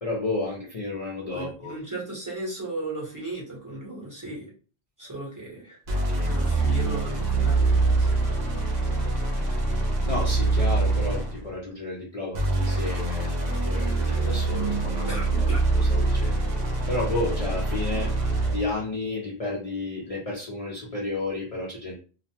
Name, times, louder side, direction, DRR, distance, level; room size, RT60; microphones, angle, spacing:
voice 1, 0.0-1.7 10.1-15.5 15.7-16.4 16.9-18.1 18.5-22.0, left 2 dB, 65° left, -4 dB, 0.3 m, -32 dB
voice 2, 1.3-4.5 5.0-5.8 6.2-8.1 9.0-9.1 15.1-15.6, right 2 dB, 15° right, -5 dB, 0.8 m, -36 dB
sound 1, 5.9-11.5 12.3-18.7, right 2 dB, 80° right, 0.3 m, -24 dB
2.5 x 2.1 x 2.7 m, 0.37 s
omnidirectional pair, 1.4 m